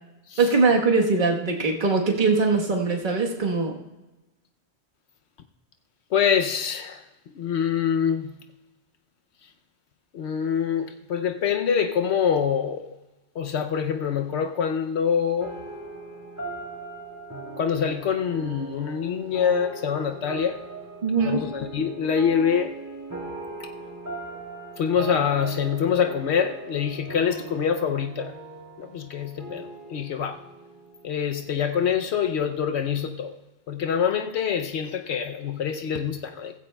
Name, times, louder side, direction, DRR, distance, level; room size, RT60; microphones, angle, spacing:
voice 1, 0.4-3.7 21.0-21.4, right 4 dB, 45° right, 1.4 m, -21 dB
voice 2, 6.1-7.0 7.4-8.3 10.1-12.9 13.4-15.5 17.6-20.6 21.2-22.8 24.8-28.3 28.8-30.4 31.0-33.4 33.7-36.5, left 7 dB, 80° left, 0.9 m, -25 dB
sound 1, 15.4-32.2, right 2 dB, 15° right, 2.8 m, -39 dB
16.0 x 15.5 x 2.2 m
omnidirectional pair, 1.1 m